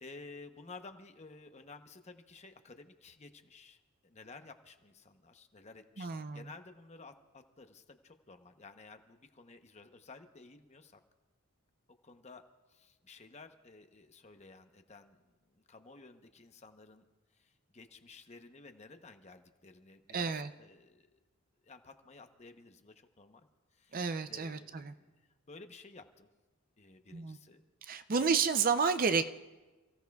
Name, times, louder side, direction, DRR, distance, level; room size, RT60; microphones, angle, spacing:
voice 1, 0.0-11.0 12.0-12.4 12.7-17.0 17.3-21.2 21.6-26.3 26.8-27.6 27.9-28.4, left 3 dB, 30° left, 7 dB, 0.8 m, -54 dB
voice 2, 6.0-6.5 20.1-20.5 23.9-24.9 27.1-27.4 27.8-29.3, right 5 dB, 40° right, 10 dB, 0.5 m, -31 dB
29.5 x 16.0 x 2.3 m, 1.2 s
head